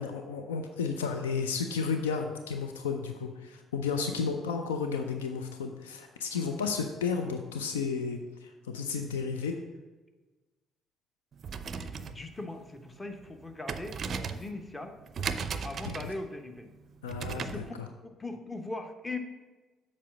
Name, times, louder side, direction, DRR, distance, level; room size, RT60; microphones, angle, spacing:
voice 1, 0.0-9.6 15.8-16.1 17.0-17.6, left 5 dB, 80° left, 5 dB, 0.4 m, -33 dB
sound 1, 11.3-17.7, right 6 dB, 45° right, 0.4 m, -38 dB
voice 2, 11.7-14.9 15.6-16.7 17.3-17.7 18.0-19.2, left 2 dB, 20° left, 6 dB, 0.9 m, -40 dB
7.4 x 4.3 x 5.9 m, 1.2 s
figure-of-eight pair, 45°, 0 cm